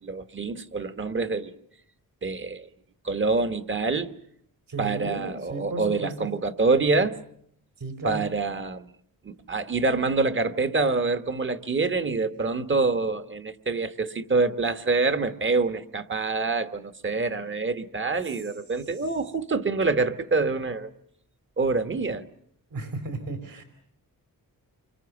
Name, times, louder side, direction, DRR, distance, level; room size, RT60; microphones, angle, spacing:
voice 1, 0.0-1.6 2.2-2.7 3.0-4.1 4.8-7.2 8.0-8.9 9.2-20.9 21.6-22.3, right 3 dB, 35° right, 1.2 m, -26 dB
voice 2, 4.7-6.3 7.8-8.2 22.7-23.6, right 2 dB, 70° right, 4.3 m, -34 dB
28.5 x 24.5 x 7.1 m
wide cardioid pair, 170°, 35 cm